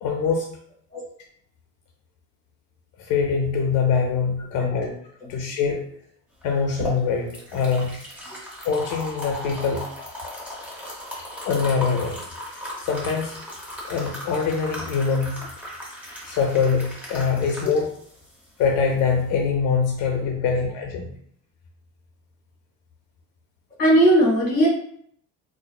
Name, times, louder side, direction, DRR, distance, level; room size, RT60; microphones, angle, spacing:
voice 1, 0.0-0.5 3.0-4.9 5.3-5.8 6.4-8.0 8.6-9.8 11.1-12.2 12.8-13.3 13.9-15.4 16.2-17.9 18.6-21.1, left 5 dB, 70° left, 1 dB, 0.5 m, -23 dB
voice 2, 4.5-4.9 23.8-24.7, right 1 dB, 30° left, -3 dB, 1.3 m, -18 dB
sound 1, 6.4-19.4, left 1 dB, 5° right, 0.6 m, -37 dB
3.8 x 2.4 x 2.3 m, 0.66 s
cardioid pair, 175°, 32 cm